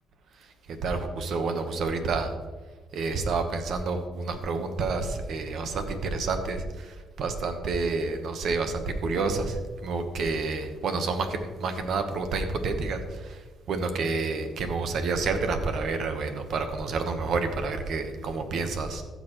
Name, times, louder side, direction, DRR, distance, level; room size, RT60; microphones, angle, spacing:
voice 1, 0.3-2.3 2.9-19.0, right 4 dB, 70° right, 7 dB, 1.2 m, -29 dB
15.0 x 6.8 x 3.2 m, 1.3 s
cardioid pair, 90°, 0 cm